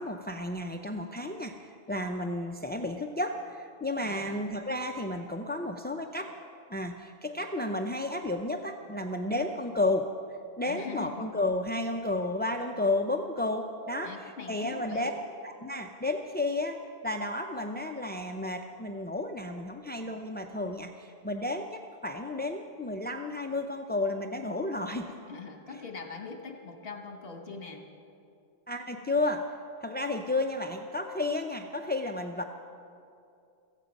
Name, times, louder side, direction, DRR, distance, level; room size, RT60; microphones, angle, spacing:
voice 1, 0.0-6.3 6.7-10.1 10.6-15.1 15.4-25.1 28.7-29.5 29.8-32.4, left 2 dB, 15° left, 4 dB, 0.3 m, -32 dB
voice 2, 4.0-4.4 10.6-11.3 14.0-15.1 25.3-27.8, left 5 dB, 65° left, 3 dB, 1.6 m, -42 dB
16.5 x 15.0 x 5.3 m, 2.6 s
omnidirectional pair, 1.1 m